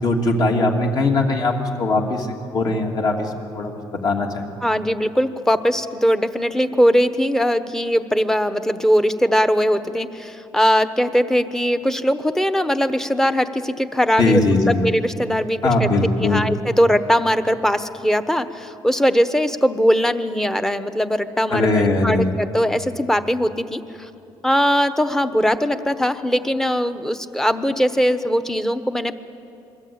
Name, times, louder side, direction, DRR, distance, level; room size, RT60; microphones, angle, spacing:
voice 1, 0.0-4.5 14.2-14.8 15.6-16.5 21.5-22.3, left 2 dB, 45° left, 1 dB, 3.0 m, -20 dB
voice 2, 4.6-14.4 14.7-15.9 16.2-24.1 24.4-29.1, equal, 5° left, 11 dB, 1.1 m, -20 dB
27.0 x 22.0 x 8.8 m, 2.8 s
cardioid pair, 120°, 9 cm